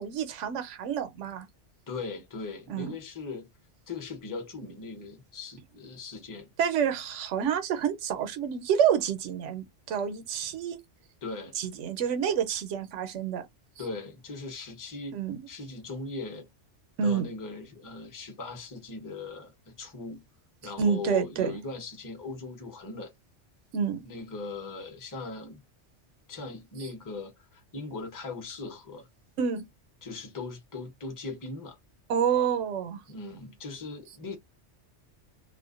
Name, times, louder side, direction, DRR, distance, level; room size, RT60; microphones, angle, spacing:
voice 1, 0.0-1.5 2.7-3.0 6.6-10.8 11.6-13.5 15.1-15.4 17.0-17.3 20.8-21.5 23.7-24.0 29.4-29.7 32.1-33.0, right 7 dB, 85° right, 0.9 m, -28 dB
voice 2, 1.9-3.5 3.9-6.5 11.2-11.6 13.8-15.2 15.5-16.5 17.0-20.2 20.6-23.1 24.0-25.6 26.3-29.1 30.0-31.8 33.1-34.4, left 3 dB, 20° left, 0.6 m, -39 dB
2.5 x 2.1 x 2.3 m
omnidirectional pair, 1.2 m